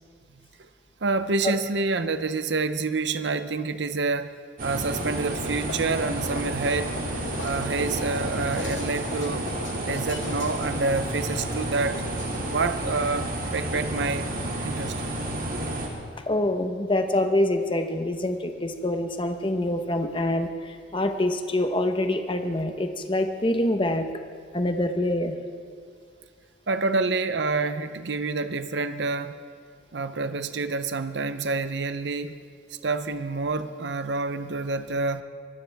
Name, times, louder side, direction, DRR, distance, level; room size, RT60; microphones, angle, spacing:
voice 1, 1.0-4.3 4.6-7.0 7.4-9.5 9.8-12.0 12.5-14.3 14.6-15.0 26.7-29.4 29.9-32.4 32.8-35.2, right 3 dB, 65° right, 11 dB, 0.7 m, -27 dB
sound 1, 4.6-12.6, left 3 dB, 85° left, 1.2 m, -39 dB
sound 2, 4.6-15.9, right 1 dB, 45° right, 2.4 m, -31 dB
voice 2, 16.3-24.1 24.5-25.4, left 1 dB, 25° left, 6 dB, 1.0 m, -25 dB
23.5 x 17.5 x 3.5 m, 2.2 s
head